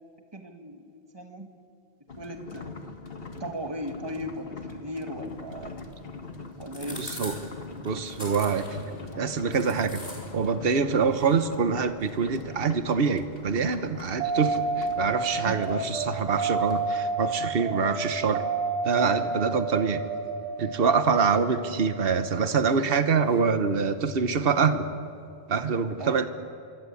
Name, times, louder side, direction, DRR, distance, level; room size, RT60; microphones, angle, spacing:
voice 1, 0.3-1.5 2.2-2.7 3.4-5.8 6.6-7.1 15.4-15.6 26.0-26.2, equal, 25° right, 4 dB, 1.9 m, -37 dB
sound 1, 2.1-16.4, left 3 dB, 60° left, 2.0 m, -42 dB
sound 2, 5.2-16.9, left 1 dB, 35° left, 6.2 m, -47 dB
voice 2, 7.0-7.3 7.8-8.8 9.2-10.0 10.3-18.4 18.8-20.0 20.6-24.9 25.5-26.2, right 5 dB, 60° right, 9 dB, 1.3 m, -25 dB
sound 3, 14.2-24.4, right 4 dB, 85° right, 3.9 m, -31 dB
25.5 x 24.5 x 8.6 m, 2.4 s
omnidirectional pair, 1.1 m